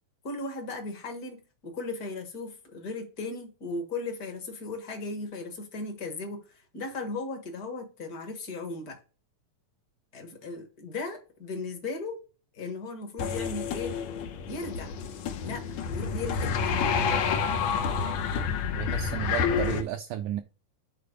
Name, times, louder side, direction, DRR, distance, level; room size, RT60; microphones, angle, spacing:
voice 1, 0.2-9.0 10.1-12.2 12.5-14.0 14.5-14.9 15.4-16.5, left 3 dB, 40° left, 1.3 m, -37 dB
sound 1, 13.2-19.8, left 6 dB, 75° left, 1.6 m, -29 dB
voice 2, 18.7-20.4, right 11 dB, 80° right, 1.8 m, -33 dB
8.6 x 4.1 x 4.0 m
omnidirectional pair, 4.0 m